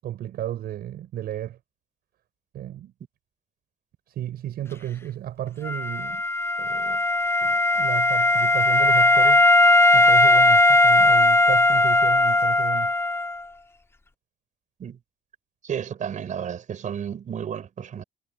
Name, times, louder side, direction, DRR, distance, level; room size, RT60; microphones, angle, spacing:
voice 1, 0.0-1.6 2.5-2.9 4.1-6.2 6.6-7.0 7.4-9.4 9.9-12.9, right 12 dB, 65° right, 7.4 m, -33 dB
Wind instrument woodwind instrument, 5.6-13.4, left 2 dB, 15° left, 1.1 m, -18 dB
voice 2, 15.6-18.0, right 8 dB, 50° right, 5.7 m, -32 dB
cardioid pair, 110°, 17 cm